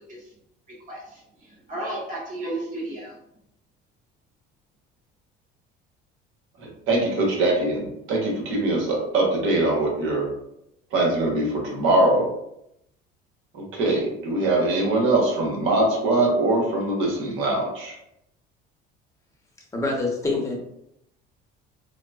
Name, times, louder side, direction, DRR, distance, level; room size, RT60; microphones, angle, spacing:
voice 1, 0.7-3.1, right 1 dB, 40° right, -5 dB, 1.4 m, -34 dB
voice 2, 6.6-10.3 10.9-12.3 13.5-18.0, right 2 dB, 70° right, -1 dB, 1.0 m, -22 dB
voice 3, 19.7-20.6, left 3 dB, 15° left, -1 dB, 0.8 m, -25 dB
3.8 x 2.0 x 2.3 m, 0.79 s
cardioid pair, 110°, 21 cm